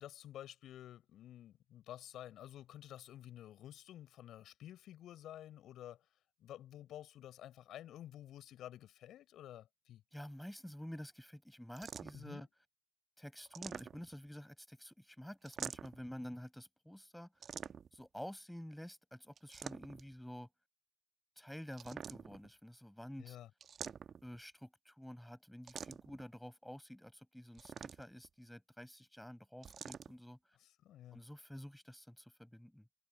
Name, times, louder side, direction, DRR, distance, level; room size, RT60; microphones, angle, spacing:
voice 1, 0.0-6.1 6.4-10.0 12.1-12.5 23.2-23.5 30.6-31.2, left 12 dB, 65° left, 7.0 m, -51 dB
voice 2, 10.1-12.5 13.2-17.3 17.9-20.5 21.4-23.4 24.2-30.4 31.1-32.8, equal, 5° left, 6.3 m, -50 dB
sound 1, 11.8-12.3 13.4-14.3 15.4-16.1 17.4-18.1 19.4-20.1 21.7-22.5 23.6-24.4 25.7-26.2 27.5-28.3 29.6-30.1, right 7 dB, 50° right, 1.3 m, -47 dB
figure-of-eight pair, 45°, 0 cm